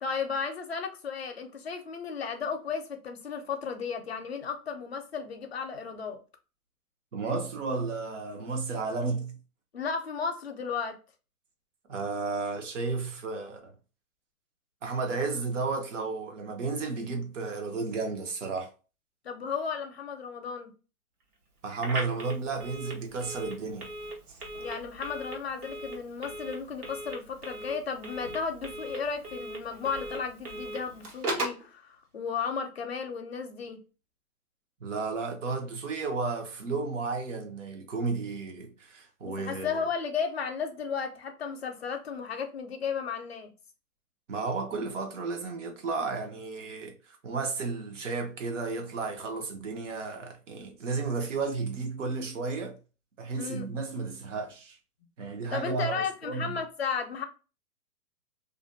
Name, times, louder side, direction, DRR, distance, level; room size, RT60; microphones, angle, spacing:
voice 1, 0.0-6.2 9.7-11.0 19.2-20.7 24.6-33.8 39.2-43.5 53.4-53.7 55.5-57.2, left 6 dB, 45° left, 0.4 m, -34 dB
voice 2, 7.1-9.4 11.9-13.7 14.8-18.7 21.6-23.9 34.8-39.8 44.3-52.8 53.2-54.8 55.2-56.5, right 4 dB, 50° right, 0.7 m, -33 dB
Telephone, 21.8-31.7, right 1 dB, 75° right, 1.3 m, -38 dB
2.4 x 2.2 x 2.5 m
hypercardioid pair, 160°, 46 cm